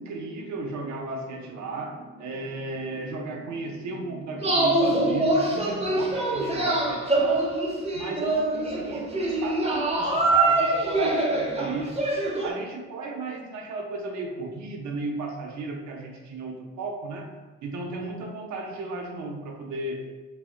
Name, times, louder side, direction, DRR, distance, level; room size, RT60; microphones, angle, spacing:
voice 1, 0.0-7.4 7.9-12.1 12.4-17.3 17.6-20.1, right 3 dB, 70° right, 2 dB, 0.6 m, -35 dB
sound 1, 4.4-12.5, right 2 dB, 20° right, 0.5 m, -24 dB
2.1 x 2.0 x 3.6 m, 1.3 s
cardioid pair, 90°, 30 cm